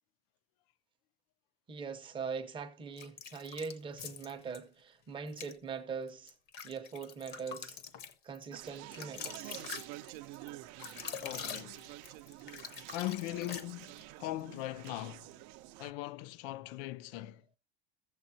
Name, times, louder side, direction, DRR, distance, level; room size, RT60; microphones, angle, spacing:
voice 1, 1.7-6.3 6.6-7.8 8.2-9.6, right 5 dB, 15° right, 0.6 m, -42 dB
sound 1, 3.0-4.6 5.3-5.6 6.1-14.1, left 7 dB, 35° left, 0.7 m, -45 dB
Conversation, 8.5-15.9, right 17 dB, 60° right, 0.5 m, -48 dB
voice 2, 11.2-11.8 12.9-15.3 15.8-17.4, left 16 dB, 70° left, 0.5 m, -40 dB
14.0 x 7.7 x 2.7 m
cardioid pair, 175°, 29 cm